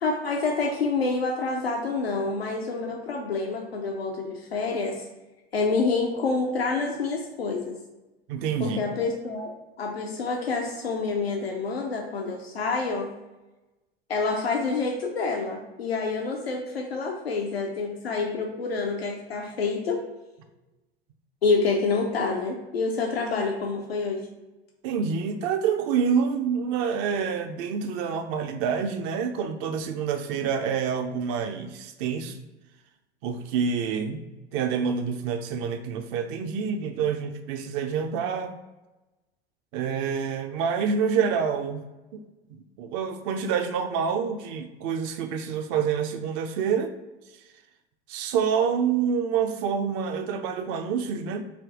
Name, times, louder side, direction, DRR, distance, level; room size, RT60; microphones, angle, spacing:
voice 1, 0.0-5.1 5.5-7.8 8.6-13.1 14.1-20.0 21.4-24.2, left 4 dB, 85° left, 1 dB, 0.5 m, -27 dB
voice 2, 8.3-8.8 24.8-32.4 33.2-34.2 34.5-38.6 39.7-41.8 42.1-42.2 42.5-46.9 48.1-51.4, right 6 dB, 40° right, 7 dB, 0.4 m, -27 dB
3.4 x 2.6 x 3.6 m, 1.1 s
figure-of-eight pair, 80°, 30 cm